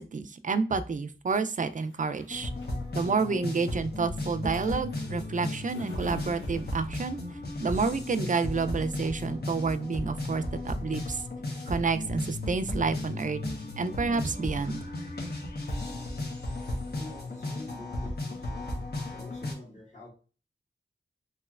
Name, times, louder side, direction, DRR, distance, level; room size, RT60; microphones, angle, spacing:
voice 1, 0.0-2.5 2.9-7.2 7.6-11.2 11.7-13.4 13.8-14.8, right 4 dB, 45° right, 10 dB, 0.4 m, -29 dB
sound 1, 1.6-8.9, left 4 dB, 85° left, 0.6 m, -50 dB
sound 2, 2.3-19.5, left 2 dB, 55° left, 1.0 m, -35 dB
voice 2, 16.9-18.7 19.1-20.1, left 2 dB, 40° left, -3 dB, 1.5 m, -47 dB
3.1 x 3.0 x 2.3 m, 0.35 s
wide cardioid pair, 55°, 19 cm